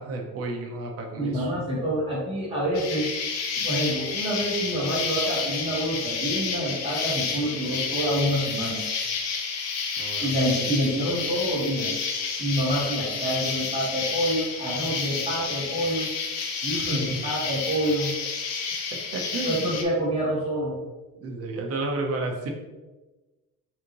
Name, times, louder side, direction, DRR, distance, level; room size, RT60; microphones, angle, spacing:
voice 1, 0.0-1.5 10.0-10.6 16.7-17.2 18.9-19.7 21.2-22.5, right 2 dB, 45° right, 2 dB, 0.8 m, -32 dB
voice 2, 1.2-3.1 3.6-8.8 10.2-11.9 12.4-16.1 16.6-18.1 19.4-20.8, right 1 dB, 15° right, -6 dB, 1.5 m, -27 dB
Insect, 2.7-19.8, left 5 dB, 55° left, 0.6 m, -30 dB
5.6 x 2.7 x 3.0 m, 1.2 s
cardioid pair, 175°, 32 cm